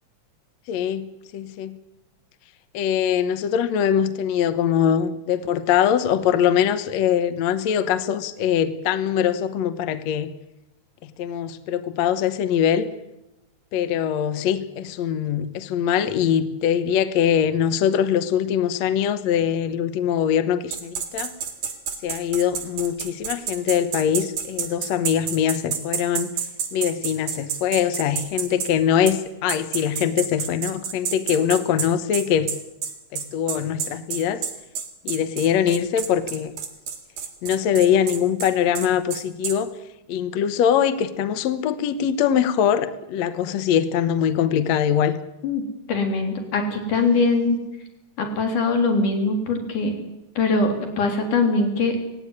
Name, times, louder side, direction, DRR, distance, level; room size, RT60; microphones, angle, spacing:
voice 1, 0.7-1.1 1.3-1.8 2.7-10.3 11.2-12.9 13.7-21.3 22.0-26.3 26.7-32.5 33.1-34.4 35.1-36.6 37.4-39.7 40.1-45.2, left 9 dB, 70° left, 11 dB, 2.0 m, -22 dB
sound 1, 20.7-28.7 29.1-29.2 29.5-39.6, right 7 dB, 75° right, 3.7 m, -29 dB
voice 2, 45.9-47.6 48.2-49.9 50.4-52.0, left 3 dB, 90° left, 4 dB, 5.0 m, -22 dB
18.5 x 16.5 x 9.7 m, 0.94 s
omnidirectional pair, 3.5 m